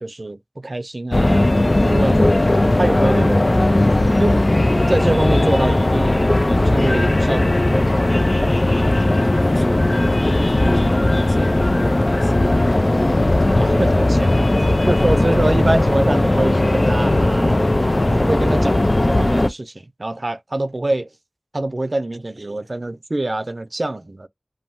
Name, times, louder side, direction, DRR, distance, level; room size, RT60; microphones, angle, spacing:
voice 1, 0.0-2.3 2.6-3.7 4.2-4.4 4.9-6.2 6.5-7.8 13.6-14.6 14.9-17.6 18.1-18.8 19.0-19.7 20.0-21.1 21.5-24.3, right 2 dB, 60° right, 0.3 m, -25 dB
sound 1, 1.1-19.5, left 1 dB, 50° left, 0.3 m, -17 dB
voice 2, 8.6-12.5 14.9-15.2, equal, 20° left, 0.8 m, -37 dB
2.6 x 2.2 x 3.0 m
wide cardioid pair, 45°, 0 cm